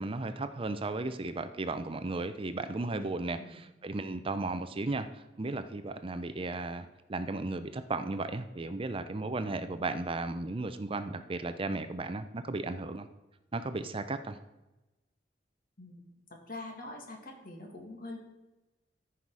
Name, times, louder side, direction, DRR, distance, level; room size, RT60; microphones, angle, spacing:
voice 1, 0.0-13.1 13.5-14.4, right 2 dB, 30° right, 10 dB, 0.6 m, -35 dB
voice 2, 16.5-18.2, left 2 dB, 55° left, 1 dB, 2.2 m, -44 dB
13.5 x 5.8 x 4.8 m, 1.0 s
head